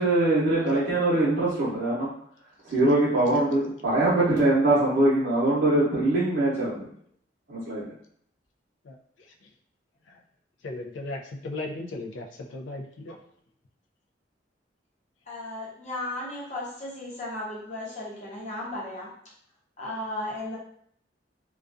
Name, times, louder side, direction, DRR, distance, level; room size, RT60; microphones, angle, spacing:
voice 1, 0.0-2.1 2.7-6.9 7.5-7.9, right 2 dB, 55° right, -10 dB, 0.7 m, -22 dB
voice 2, 10.6-13.2, left 2 dB, 85° left, 2 dB, 0.4 m, -36 dB
voice 3, 15.3-19.1 19.8-20.6, left 1 dB, 40° left, -5 dB, 0.8 m, -35 dB
2.3 x 2.2 x 2.5 m, 0.63 s
head